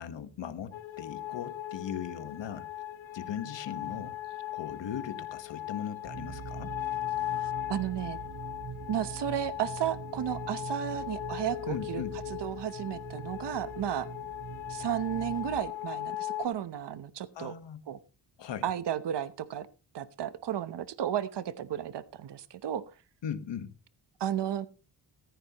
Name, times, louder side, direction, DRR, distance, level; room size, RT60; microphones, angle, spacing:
voice 1, 0.0-2.7 3.1-4.2 4.5-6.7 11.7-12.2 17.3-17.8 18.4-18.6 23.2-23.7, left 8 dB, 70° left, 1.5 m, -38 dB
sound 1, 0.7-16.5, left 14 dB, 90° left, 1.0 m, -38 dB
sound 2, 6.0-15.6, right 7 dB, 40° right, 0.8 m, -44 dB
voice 2, 7.3-8.2 8.9-14.1 14.7-17.5 17.9-18.0 18.6-19.7 19.9-22.8 24.2-24.7, right 10 dB, 65° right, 1.0 m, -33 dB
14.5 x 14.5 x 3.0 m
wide cardioid pair, 145°, 45 cm